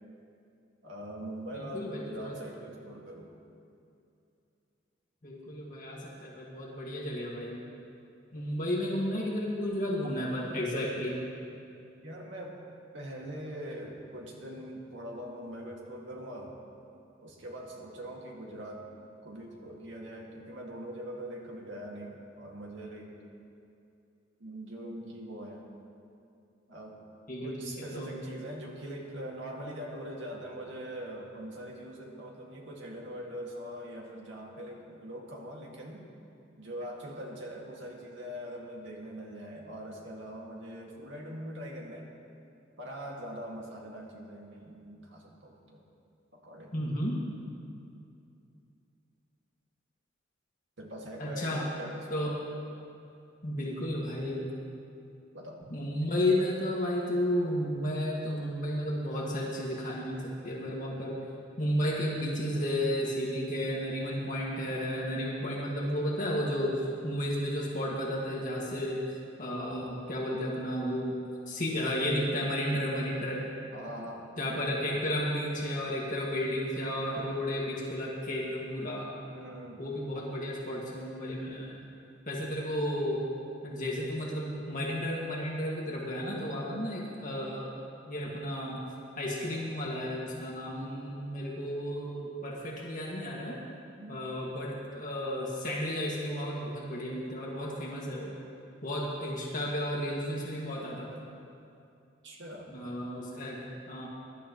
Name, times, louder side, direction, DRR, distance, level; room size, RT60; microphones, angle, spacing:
voice 1, 0.8-3.3 9.9-10.0 12.0-12.6 12.9-16.6 17.2-18.9 19.2-23.1 24.4-25.6 26.7-27.0 27.4-36.0 36.6-42.1 42.8-45.8 46.3-46.8 50.8-52.3 55.3-55.6 73.7-74.3 79.3-79.9 94.0-94.2 102.2-102.7, right 1 dB, 75° right, -1 dB, 2.2 m, -42 dB
voice 2, 1.5-2.4 5.2-7.7 8.3-11.2 27.3-28.2 46.7-47.2 51.2-51.7 52.1-52.3 53.4-54.5 55.7-61.2 61.6-71.2 71.5-73.5 74.4-79.1 79.8-81.8 82.3-83.2 83.6-87.7 88.1-88.8 89.2-93.6 94.1-98.3 98.8-101.3 102.7-104.1, equal, 45° left, -4 dB, 2.0 m, -33 dB
22.0 x 12.0 x 3.1 m, 2.6 s
head